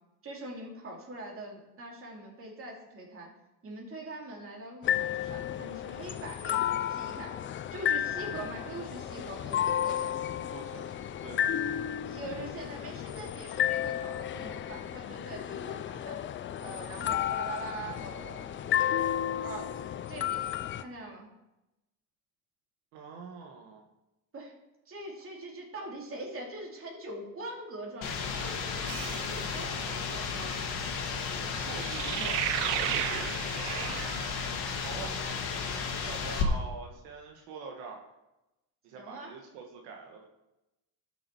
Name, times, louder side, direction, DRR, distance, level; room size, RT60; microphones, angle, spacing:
voice 1, 0.2-3.3 3.6-7.4 7.7-10.4 12.0-16.2 16.6-19.0 19.4-19.8 20.1-20.4 20.7-21.3 24.3-24.5 24.9-29.9 38.9-39.3, right 2 dB, 30° right, -1 dB, 2.8 m, -43 dB
sound 1, 4.8-20.8, left 10 dB, 30° left, 0.4 m, -32 dB
voice 2, 10.2-11.5 22.9-23.9 29.9-30.5 31.5-32.5 34.8-35.4 35.7-38.1 38.8-40.3, right 4 dB, 85° right, 1 dB, 1.6 m, -45 dB
sound 2, 28.0-36.4, left 6 dB, 65° left, 1.9 m, -34 dB
sound 3, 28.9-29.6 31.6-34.6, right 13 dB, 65° right, 0.6 m, -34 dB
13.0 x 6.5 x 4.5 m, 0.96 s
cardioid pair, 120°, 42 cm